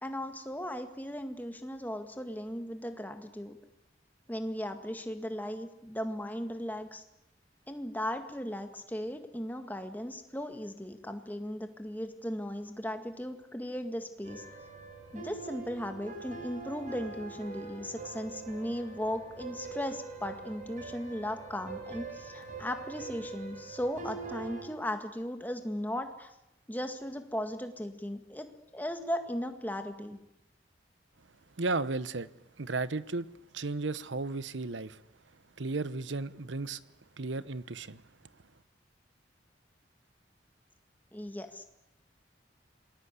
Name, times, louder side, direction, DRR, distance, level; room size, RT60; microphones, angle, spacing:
voice 1, 0.0-3.6 4.3-7.0 7.7-14.4 15.1-26.3 26.7-30.2 41.1-41.6, equal, 10° left, 1.8 m, -37 dB
sound 1, 14.2-24.6, right 4 dB, 45° right, 4.7 m, -44 dB
voice 2, 31.6-32.3 32.6-33.3 33.5-35.0 35.6-36.8 37.2-38.0, right 3 dB, 80° right, 1.0 m, -34 dB
27.5 x 20.5 x 8.3 m
head